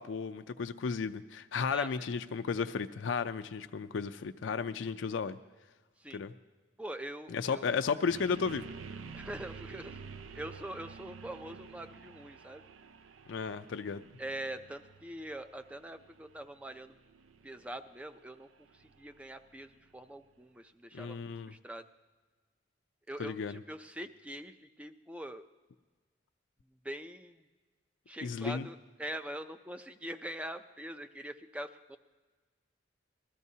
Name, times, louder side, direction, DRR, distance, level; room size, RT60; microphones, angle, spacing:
voice 1, 0.0-5.4 6.1-6.3 7.3-8.6 13.3-14.0 20.9-21.5 23.2-23.6 28.2-28.7, left 5 dB, 70° left, 9 dB, 0.4 m, -34 dB
voice 2, 6.8-7.8 9.1-10.0 10.3-12.6 14.2-17.0 17.4-21.9 23.1-25.4 26.8-27.4 28.1-32.0, right 1 dB, 5° right, 9 dB, 0.4 m, -43 dB
sound 1, 8.1-20.1, right 5 dB, 85° right, 0.5 m, -50 dB
20.5 x 13.5 x 2.8 m, 1.3 s
head